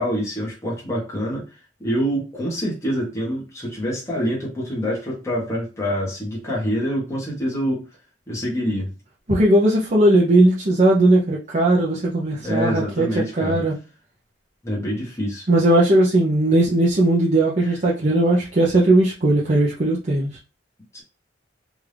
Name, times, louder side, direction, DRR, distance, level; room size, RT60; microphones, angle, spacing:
voice 1, 0.0-1.4 1.8-7.8 8.3-8.9 12.4-13.6 14.6-15.5 17.6-17.8 20.9-21.0, equal, 15° left, -4 dB, 1.3 m, -26 dB
voice 2, 9.3-13.7 15.5-20.3, right 1 dB, 40° right, -5 dB, 0.8 m, -18 dB
3.5 x 2.6 x 3.3 m, 0.32 s
head